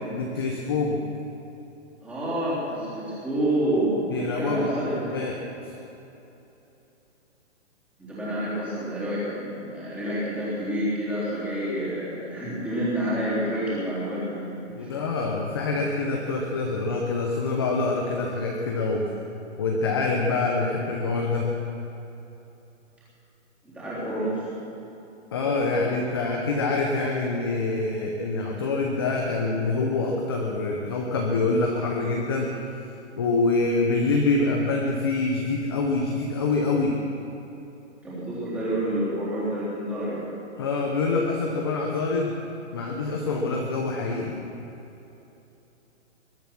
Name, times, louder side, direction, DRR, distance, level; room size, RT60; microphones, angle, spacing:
voice 1, 0.1-1.0 4.1-4.7 5.1-5.3 14.7-19.1 19.6-21.5 25.3-32.5 33.2-37.0 40.6-42.4 42.7-44.4, left 3 dB, 20° left, 0 dB, 0.8 m, -25 dB
voice 2, 2.0-4.0 4.3-5.2 8.0-14.5 14.8-15.0 23.6-24.4 38.0-40.2, right 1 dB, 5° right, -10 dB, 3.5 m, -28 dB
21.5 x 11.0 x 6.0 m, 3.0 s
hypercardioid pair, 175°, 36 cm